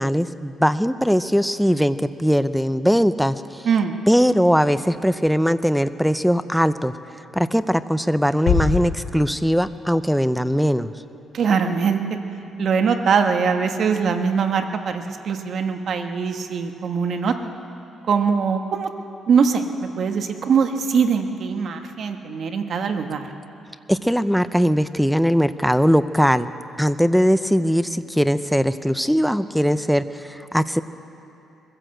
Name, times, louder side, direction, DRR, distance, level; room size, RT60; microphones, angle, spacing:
voice 1, 0.0-3.7 4.1-7.0 7.3-10.9 23.9-26.5 26.8-30.8, equal, ahead, 13 dB, 0.6 m, -20 dB
voice 2, 3.6-3.9 11.3-12.0 12.6-17.3 18.1-18.9 19.3-23.3, right 6 dB, 55° right, 5 dB, 1.4 m, -22 dB
sound 1, 8.5-9.9, left 6 dB, 85° left, 1.8 m, -24 dB
21.5 x 15.0 x 7.9 m, 2.8 s
cardioid pair, 115°, 0 cm